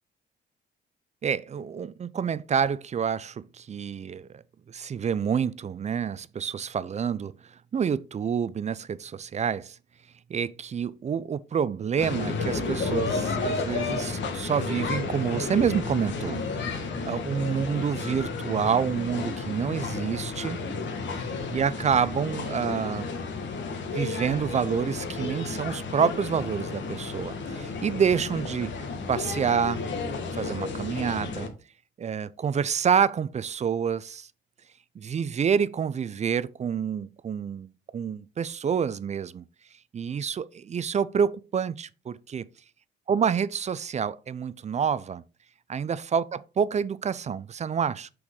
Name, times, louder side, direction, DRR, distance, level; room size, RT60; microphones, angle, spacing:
voice 1, 1.2-4.3 4.7-7.3 7.7-9.8 10.3-20.6 21.5-23.1 23.9-28.7 29.1-29.8 30.3-31.5 32.0-34.3 35.0-39.4 39.9-42.4 43.1-45.2 45.7-48.1, right 7 dB, 35° right, 0.4 m, -28 dB
sound 1, 12.0-31.5, left 4 dB, 65° left, 1.6 m, -32 dB
6.2 x 6.0 x 3.8 m
cardioid pair, 90°, 20 cm